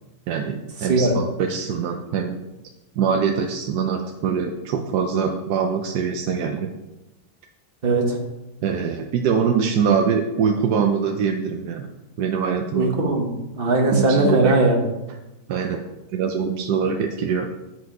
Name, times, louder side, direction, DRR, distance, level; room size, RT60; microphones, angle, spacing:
voice 1, 0.3-2.3 3.0-6.7 8.6-11.9 12.2-12.9 13.9-14.5 15.5-15.8 16.1-17.5, right 6 dB, 75° right, 3 dB, 1.2 m, -23 dB
voice 2, 7.8-8.2 12.7-14.8, right 2 dB, 35° right, 1 dB, 1.5 m, -19 dB
8.3 x 6.8 x 4.6 m, 1.0 s
omnidirectional pair, 1.8 m